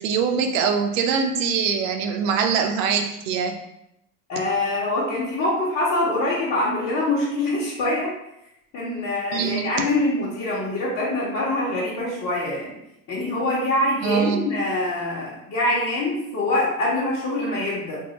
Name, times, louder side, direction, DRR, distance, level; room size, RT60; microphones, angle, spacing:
voice 1, 0.0-3.5 9.3-9.7 14.0-14.4, right 6 dB, 85° right, 5 dB, 0.7 m, -23 dB
voice 2, 4.3-8.1 8.7-12.7 13.1-18.0, left 2 dB, 40° left, -10 dB, 1.3 m, -24 dB
2.7 x 2.7 x 4.1 m, 0.83 s
supercardioid pair, 125°, 39 cm